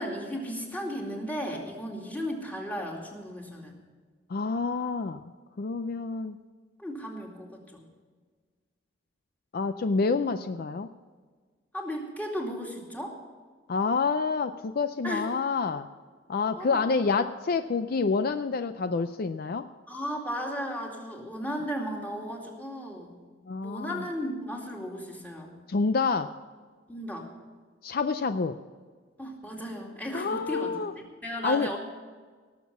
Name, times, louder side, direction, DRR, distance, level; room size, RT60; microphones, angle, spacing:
voice 1, 0.0-3.8 6.8-7.8 11.7-13.2 15.0-15.3 16.6-16.9 19.9-23.1 23.6-25.6 26.9-27.3 29.2-30.8 31.2-31.8, equal, 10° left, -1 dB, 2.4 m, -35 dB
voice 2, 4.3-5.3 5.6-6.4 9.5-10.9 13.7-15.9 16.3-19.7 23.5-24.0 25.7-26.3 27.8-28.6 30.1-30.9 31.4-31.7, left 4 dB, 55° left, 10 dB, 0.4 m, -28 dB
18.0 x 7.3 x 7.0 m, 1.5 s
head